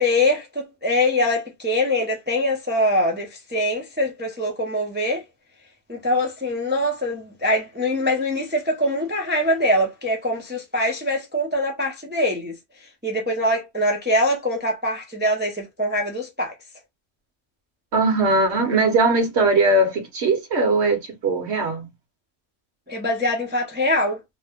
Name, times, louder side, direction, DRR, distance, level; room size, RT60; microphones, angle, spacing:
voice 1, 0.0-5.2 5.9-12.6 13.0-16.5 22.9-24.2, left 1 dB, 15° right, 0.5 m, -23 dB
voice 2, 17.9-21.9, right 2 dB, 60° right, 1.1 m, -20 dB
2.7 x 2.1 x 3.4 m
omnidirectional pair, 1.3 m